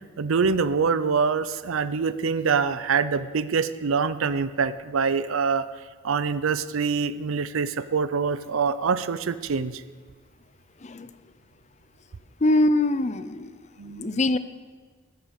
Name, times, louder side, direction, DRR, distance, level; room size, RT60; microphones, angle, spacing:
voice 1, 0.2-5.6 6.0-9.8 13.8-14.0, right 5 dB, 80° right, 14 dB, 0.5 m, -25 dB
voice 2, 12.4-13.5 13.8-14.4, left 2 dB, 35° left, 13 dB, 0.5 m, -23 dB
14.0 x 8.1 x 6.5 m, 1.5 s
head